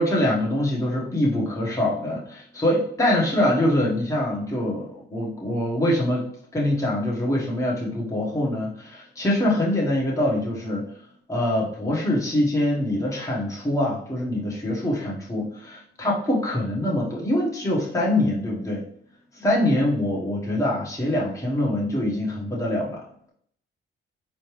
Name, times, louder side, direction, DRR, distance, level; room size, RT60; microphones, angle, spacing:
voice 1, 0.0-6.3 6.5-10.8 11.3-18.8 19.3-23.1, left 1 dB, 15° left, -4 dB, 1.3 m, -24 dB
4.2 x 3.3 x 3.2 m, 0.66 s
cardioid pair, 90°, 20 cm